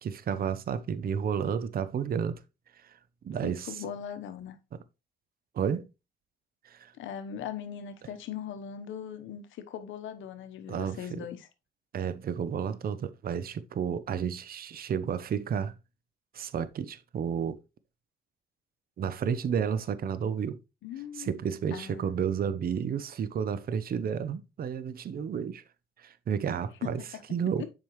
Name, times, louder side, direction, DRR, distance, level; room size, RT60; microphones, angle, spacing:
voice 1, 0.0-2.4 2.8-3.0 3.2-3.8 4.7-4.8 5.5-5.9 6.6-6.9 10.7-11.3 11.9-15.8 16.3-17.6 19.0-20.6 21.1-25.6 26.0-27.0 27.3-27.7, right 7 dB, 50° right, 0.6 m, -31 dB
voice 2, 3.4-4.6 7.0-11.5 20.8-21.3 21.7-22.1 26.8-27.2, left 9 dB, 80° left, 1.0 m, -39 dB
7.3 x 5.1 x 3.1 m
cardioid pair, 90°, 20 cm